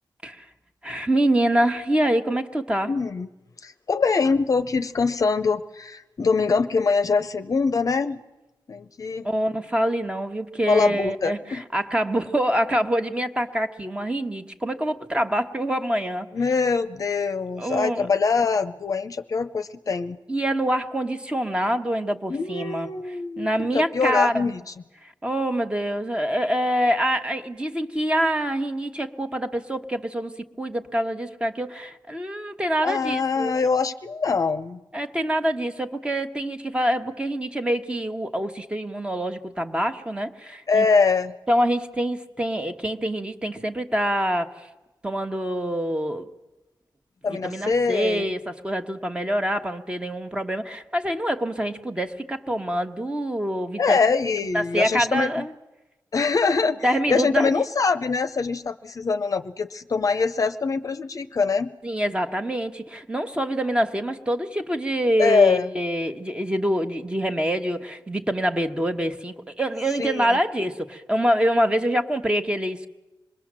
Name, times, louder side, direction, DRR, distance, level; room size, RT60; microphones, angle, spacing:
voice 1, 0.8-2.9 9.2-16.3 17.6-18.1 20.3-22.9 23.4-24.5 25.0-33.5 34.9-40.9 41.5-44.5 45.0-46.3 47.4-54.0 54.5-55.5 56.8-57.6 61.8-72.9, right 1 dB, 15° right, 6 dB, 1.2 m, -25 dB
voice 2, 2.8-3.3 3.6-8.2 8.7-9.3 10.7-11.6 16.3-20.2 22.3-24.7 32.8-34.8 40.7-41.3 47.2-48.3 53.8-55.5 56.1-61.7 65.2-65.7 70.0-70.4, left 4 dB, 45° left, 10 dB, 0.8 m, -23 dB
26.5 x 21.5 x 7.6 m, 1.0 s
wide cardioid pair, 145°, 8 cm